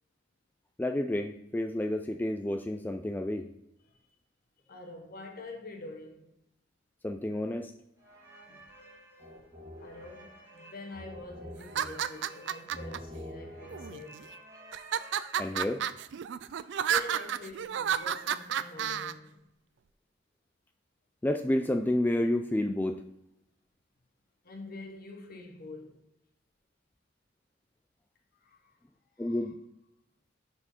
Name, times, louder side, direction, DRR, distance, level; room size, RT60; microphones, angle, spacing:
voice 1, 0.8-3.5 7.0-7.7 15.4-15.8 21.2-23.0 29.2-29.5, left 1 dB, 10° left, 0.3 m, -30 dB
voice 2, 4.7-6.3 8.5-8.6 9.8-14.2 16.9-19.4 24.4-26.0 28.4-28.7 29.2-29.4, left 2 dB, 50° left, 1.2 m, -45 dB
sound 1, 8.0-15.9, equal, 15° right, 1.8 m, -48 dB
sound 2, 11.6-13.0 13.7-14.2 14.7-19.1, right 9 dB, 70° right, 0.4 m, -31 dB
6.8 x 4.4 x 5.7 m
head